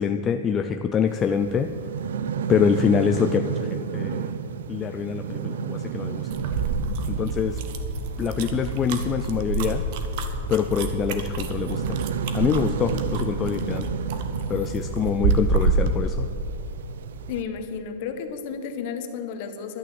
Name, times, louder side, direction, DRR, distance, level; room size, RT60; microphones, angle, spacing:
voice 1, 0.0-1.7 2.5-4.3 4.7-6.3 7.1-7.6 8.2-9.8 10.5-12.0 12.3-13.9 14.5-16.3, left 7 dB, 15° left, 7 dB, 0.4 m, -25 dB
sound 1, 1.1-17.4, right 8 dB, 75° right, 0.6 m, -33 dB
sound 2, 6.3-16.0, right 3 dB, 45° right, 1.1 m, -28 dB
voice 2, 17.3-19.8, left 6 dB, 40° left, 7 dB, 1.3 m, -32 dB
12.0 x 9.2 x 7.8 m, 2.7 s
supercardioid pair, 165°, 0 cm